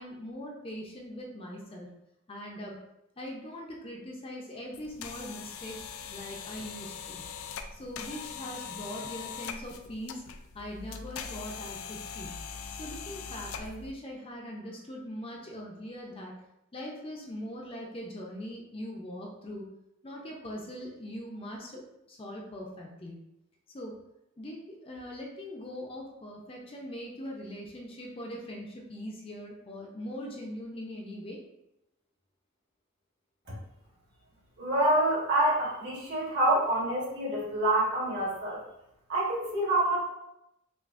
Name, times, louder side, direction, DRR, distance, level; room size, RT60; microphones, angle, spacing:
voice 1, 0.0-1.9 2.3-2.8 3.2-5.8 6.1-7.2 7.7-10.2 10.5-12.3 12.7-16.4 16.7-19.7 20.0-21.8 22.1-23.2 23.7-24.0 24.4-31.4, equal, 25° left, -1 dB, 0.6 m, -41 dB
sound 1, 4.7-13.9, left 6 dB, 80° left, 0.4 m, -41 dB
voice 2, 34.6-38.6 39.1-40.0, right 1 dB, 55° right, -5 dB, 1.5 m, -27 dB
5.8 x 2.5 x 2.5 m, 0.85 s
head